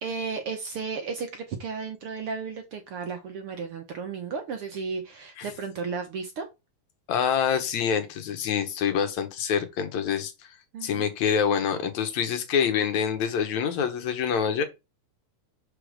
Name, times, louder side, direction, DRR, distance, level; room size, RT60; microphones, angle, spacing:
voice 1, 0.0-6.5 10.7-11.1, right 5 dB, 60° right, 1.6 m, -34 dB
voice 2, 7.1-10.3 10.8-14.6, left 7 dB, 70° left, 2.5 m, -26 dB
5.6 x 5.1 x 6.5 m
omnidirectional pair, 3.5 m